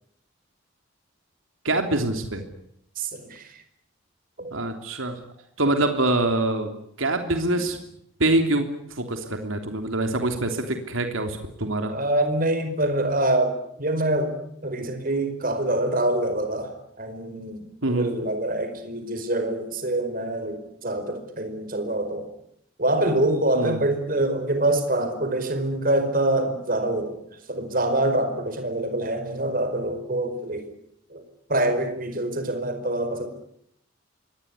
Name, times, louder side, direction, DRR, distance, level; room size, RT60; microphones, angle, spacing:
voice 1, 1.6-2.4 4.5-5.2 5.6-7.8 8.2-11.9 17.8-18.1 23.5-23.8, right 2 dB, 80° right, 6 dB, 3.3 m, -25 dB
voice 2, 3.0-3.6 4.4-4.6 11.8-22.3 22.8-27.2 27.5-30.7 31.1-31.2 31.5-33.3, right 1 dB, 45° right, 8 dB, 4.9 m, -25 dB
24.5 x 20.0 x 9.6 m, 0.74 s
head